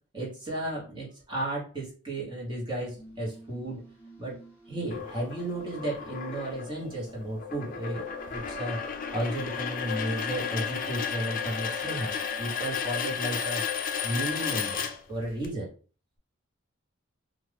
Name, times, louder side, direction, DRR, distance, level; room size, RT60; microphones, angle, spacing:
voice 1, 0.1-3.8 4.2-4.4 4.7-8.8 9.1-13.6 14.0-15.7, right 1 dB, 20° right, -5 dB, 1.2 m, -34 dB
sound 1, 2.9-13.2, right 1 dB, 10° left, 1.1 m, -53 dB
sound 2, 4.9-15.5, left 7 dB, 40° left, 0.4 m, -33 dB
2.6 x 2.4 x 3.4 m, 0.39 s
head